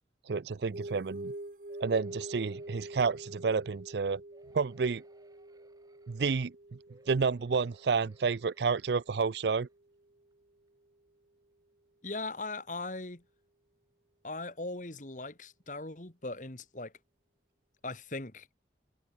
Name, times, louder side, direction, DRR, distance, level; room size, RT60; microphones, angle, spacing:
voice 1, 0.3-1.3 1.8-4.2 4.5-5.0 6.1-6.5 7.1-9.7, right 5 dB, 70° right, 0.5 m, -30 dB
sound 1, 0.7-9.7, right 1 dB, 50° right, 1.1 m, -46 dB
sound 2, 1.7-3.8 4.3-6.5 6.9-9.7 10.3-10.4 10.7-10.8, right 1 dB, 20° right, 7.0 m, -66 dB
voice 2, 12.0-13.2 14.2-16.9 17.8-18.5, left 2 dB, 45° left, 2.0 m, -39 dB
head